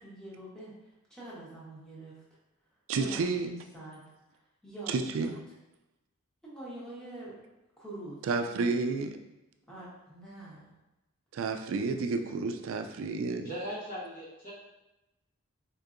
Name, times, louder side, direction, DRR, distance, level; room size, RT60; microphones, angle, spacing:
voice 1, 0.0-2.2 3.0-4.0 4.3-5.4 6.4-7.4 7.8-8.2 9.7-10.8, right 1 dB, 5° left, -8 dB, 0.9 m, -45 dB
voice 2, 2.9-3.5 4.9-5.3 8.3-9.2 11.3-13.5, right 4 dB, 65° right, 6 dB, 0.3 m, -30 dB
voice 3, 13.4-14.5, equal, 40° left, -8 dB, 1.2 m, -38 dB
4.5 x 2.7 x 2.5 m, 0.98 s
head